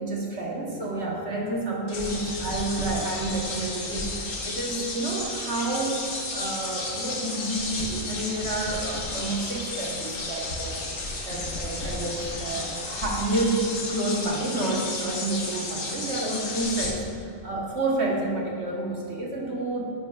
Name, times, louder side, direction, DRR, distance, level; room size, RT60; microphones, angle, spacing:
voice 1, 0.0-10.9 11.3-19.9, right 2 dB, 60° right, -2 dB, 1.3 m, -29 dB
sound 1, 1.9-16.9, left 2 dB, 85° left, 1.5 m, -33 dB
9.9 x 9.4 x 2.3 m, 2.5 s
omnidirectional pair, 1.3 m